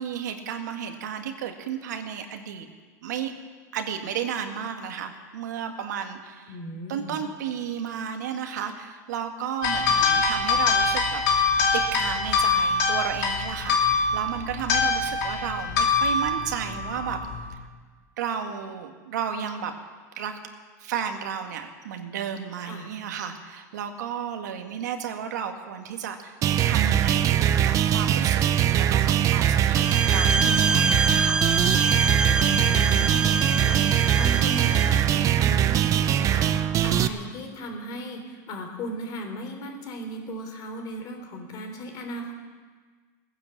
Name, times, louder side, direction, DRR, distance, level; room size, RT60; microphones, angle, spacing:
voice 1, 0.0-2.7 3.0-3.3 3.7-6.6 6.9-11.2 11.7-17.2 18.2-19.7 20.2-20.4 20.8-26.4 26.6-31.4, right 8 dB, 90° right, 5 dB, 1.9 m, -33 dB
voice 2, 6.5-7.2 22.6-22.9 32.4-42.3, right 1 dB, 45° left, 4 dB, 3.6 m, -36 dB
sound 1, 9.6-17.5, left 4 dB, 75° left, 2.9 m, -24 dB
sound 2, 26.4-37.1, right 10 dB, 35° right, 0.8 m, -22 dB
sound 3, 29.8-35.0, right 3 dB, 10° right, 0.4 m, -26 dB
18.5 x 9.9 x 7.4 m, 1.5 s
supercardioid pair, 125°, 9 cm